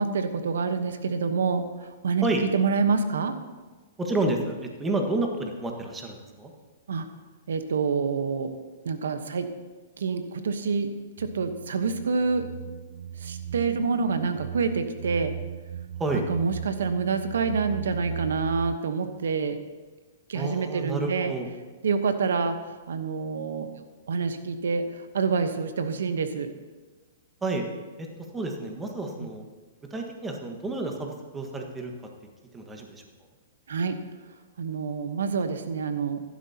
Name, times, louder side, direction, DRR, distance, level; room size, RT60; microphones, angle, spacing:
voice 1, 0.0-1.6 2.0-2.2 2.5-3.4 6.9-7.0 7.5-8.5 8.8-9.5 10.0-10.9 11.2-12.5 13.2-15.3 16.1-19.6 20.3-21.3 21.8-22.5 22.9-23.7 24.1-24.8 25.1-26.5 29.2-29.3 33.7-34.0 34.6-36.2, right 5 dB, 85° right, 9 dB, 1.1 m, -27 dB
voice 2, 4.0-6.5 16.0-16.3 20.3-21.5 27.4-27.6 28.0-28.1 28.3-29.4 29.9-31.9 32.5-33.0, right 2 dB, 10° right, 2 dB, 1.6 m, -30 dB
sound 1, 11.2-18.8, right 9 dB, 65° right, 0.4 m, -38 dB
14.5 x 11.5 x 2.9 m, 1.3 s
hypercardioid pair, 140°, 0 cm